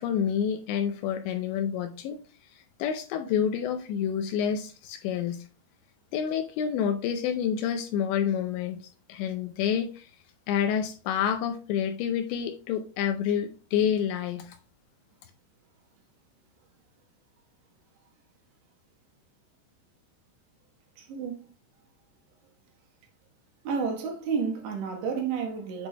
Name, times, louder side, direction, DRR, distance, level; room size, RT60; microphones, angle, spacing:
voice 1, 0.0-5.4 6.1-8.8 9.1-10.1 10.5-14.6, left 8 dB, 85° left, 2.5 m, -28 dB
voice 2, 21.0-21.5 23.6-25.9, right 6 dB, 70° right, 3.1 m, -31 dB
8.4 x 6.1 x 2.2 m
omnidirectional pair, 5.7 m